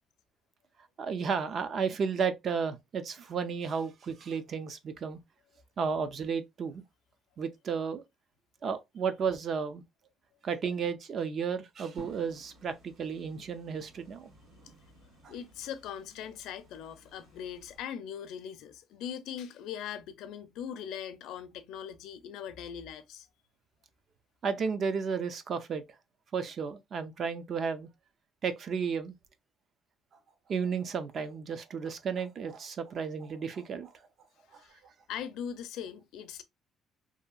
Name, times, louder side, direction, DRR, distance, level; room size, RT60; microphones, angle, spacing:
voice 1, 1.0-5.2 5.8-6.8 7.4-8.0 8.6-9.8 10.4-14.3 15.2-15.3 24.4-25.8 26.3-27.9 28.4-29.1 30.5-33.9 34.5-34.6, right 6 dB, 40° right, 0.4 m, -33 dB
sound 1, 12.0-17.8, right 2 dB, 90° right, 1.9 m, -56 dB
voice 2, 15.3-23.3 34.5-34.8 35.1-36.4, left 9 dB, 70° left, 0.5 m, -40 dB
2.7 x 2.7 x 2.3 m
cardioid pair, 155°, 0 cm